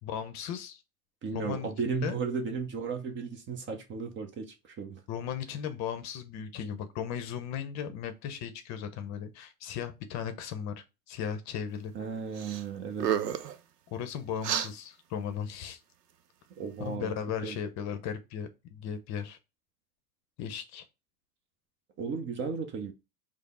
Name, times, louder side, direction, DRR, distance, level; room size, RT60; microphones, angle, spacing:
voice 1, 0.0-0.8 1.3-1.7 2.0-2.1 5.1-11.9 13.9-15.8 16.8-19.4 20.4-20.8, left 8 dB, 35° left, 0.7 m, -36 dB
voice 2, 1.2-5.0 11.9-13.1 16.5-17.2 17.4-17.6 22.0-22.9, right 5 dB, 25° right, 0.6 m, -35 dB
sound 1, 12.4-12.6 12.9-13.6 14.4-14.7, right 9 dB, 85° right, 0.6 m, -30 dB
5.0 x 2.1 x 4.2 m
hypercardioid pair, 90°, 47 cm